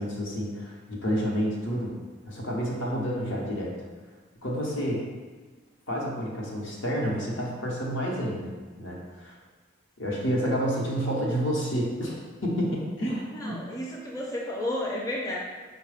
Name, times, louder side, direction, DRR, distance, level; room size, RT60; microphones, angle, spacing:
voice 1, 0.0-1.9 2.2-3.7 4.4-5.0 5.9-8.5 8.8-9.3 10.0-13.7, equal, 75° left, -3 dB, 0.9 m, -29 dB
voice 2, 13.3-15.4, left 1 dB, 15° left, -3 dB, 0.4 m, -32 dB
4.8 x 2.2 x 4.8 m, 1.4 s
head